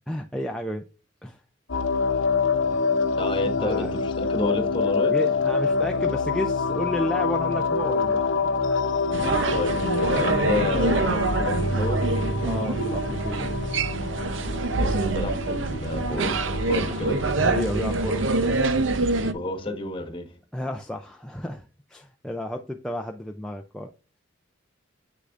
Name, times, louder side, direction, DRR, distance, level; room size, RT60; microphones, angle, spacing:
voice 1, 0.1-0.8 1.2-1.4 2.7-2.8 3.6-3.9 5.1-8.2 9.5-9.6 12.4-13.5 16.9-17.0 17.4-18.5 20.5-23.9, left 1 dB, 5° left, 0.4 m, -32 dB
sound 1, 1.7-18.5, left 4 dB, 75° left, 0.8 m, -27 dB
voice 2, 3.2-5.1 9.5-12.0 14.7-17.2 19.2-20.3, left 2 dB, 25° left, 1.3 m, -30 dB
sound 2, 9.1-19.3, right 3 dB, 75° right, 0.7 m, -25 dB
7.6 x 6.6 x 2.5 m
head